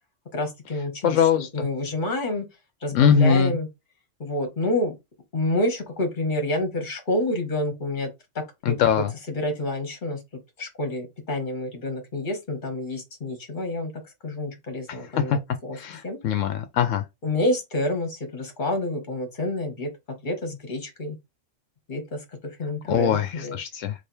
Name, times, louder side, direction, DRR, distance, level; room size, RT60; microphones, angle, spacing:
voice 1, 0.3-2.4 2.8-3.7 4.2-4.9 5.3-8.1 8.3-8.9 9.3-10.2 10.6-13.9 14.2-15.8 16.0-16.2 17.2-19.9 20.2-21.2 21.9-22.2 22.6-23.6, left 1 dB, 40° left, 1.4 m, -28 dB
voice 2, 1.0-1.7 2.9-3.6 8.7-9.1 14.9-15.0 15.3-15.4 15.8-17.0 22.9-23.9, left 7 dB, 80° left, 1.0 m, -22 dB
3.4 x 2.5 x 4.3 m
omnidirectional pair, 1.3 m